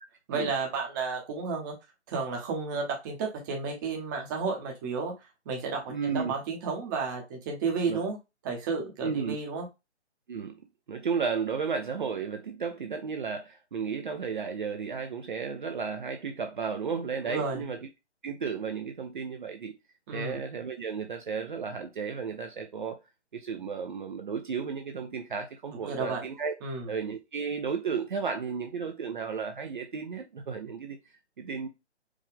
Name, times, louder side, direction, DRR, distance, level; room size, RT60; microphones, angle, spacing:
voice 1, 0.3-1.7 2.1-5.1 5.5-8.2 8.4-9.7 17.3-17.6 20.1-20.4 25.8-26.2 26.6-26.9, right 4 dB, 15° right, 0.9 m, -32 dB
voice 2, 5.9-6.3 7.9-8.0 9.0-9.4 10.3-10.6 10.9-17.9 18.2-19.7 20.1-23.0 23.3-26.5 26.9-31.0 31.4-31.7, right 5 dB, 45° right, 0.6 m, -33 dB
4.8 x 2.6 x 3.6 m
figure-of-eight pair, 145°, 35 cm